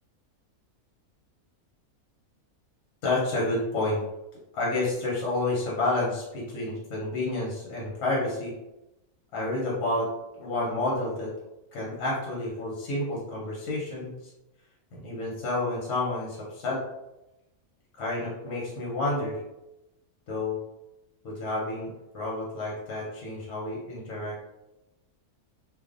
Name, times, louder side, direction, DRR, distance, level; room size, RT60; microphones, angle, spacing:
voice 1, 3.0-4.0 4.5-8.5 9.3-10.1 10.4-11.3 11.7-14.3 14.9-16.8 18.0-19.4 20.3-20.6 21.2-24.4, left 2 dB, 85° left, -4 dB, 1.2 m, -30 dB
2.4 x 2.4 x 2.4 m, 0.94 s
omnidirectional pair, 1.6 m